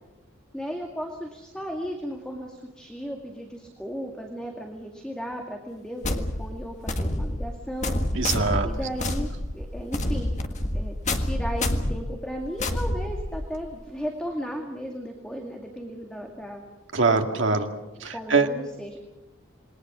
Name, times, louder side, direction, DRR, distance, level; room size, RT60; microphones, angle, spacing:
voice 1, 0.5-7.9 8.6-9.3 9.5-10.3 10.7-16.6 18.1-19.0, equal, 5° left, 1 dB, 2.2 m, -35 dB
sound 1, 6.0-13.7, left 1 dB, 35° left, 1.8 m, -28 dB
voice 2, 8.1-8.7 16.9-17.7 18.0-18.5, right 4 dB, 65° right, 4 dB, 2.2 m, -23 dB
27.0 x 22.0 x 6.2 m, 1.0 s
head